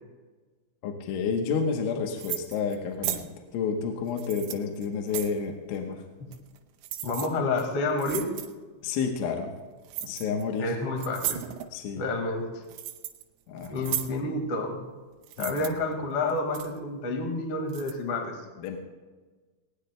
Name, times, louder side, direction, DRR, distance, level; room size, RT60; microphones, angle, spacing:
voice 1, 0.8-6.0 8.8-9.5 10.0-10.7 11.7-12.0 13.5-13.9 15.4-15.8 18.6-18.8, left 6 dB, 75° left, 2 dB, 3.4 m, -30 dB
sound 1, 2.2-2.8 3.0-3.3 4.1-5.4 6.3-6.6 6.8-7.3 7.6-7.7 8.0-8.5 9.9-10.4 11.0-11.7 12.4-13.2 13.6-14.1 15.2-15.7 16.3-16.8 17.7-17.9, right 13 dB, 80° right, 3.2 m, -35 dB
voice 2, 7.0-8.3 10.6-11.5 12.0-12.4 13.7-14.8 15.4-18.4, left 2 dB, 55° left, 2 dB, 1.6 m, -29 dB
20.0 x 19.0 x 2.3 m, 1.3 s
omnidirectional pair, 5.9 m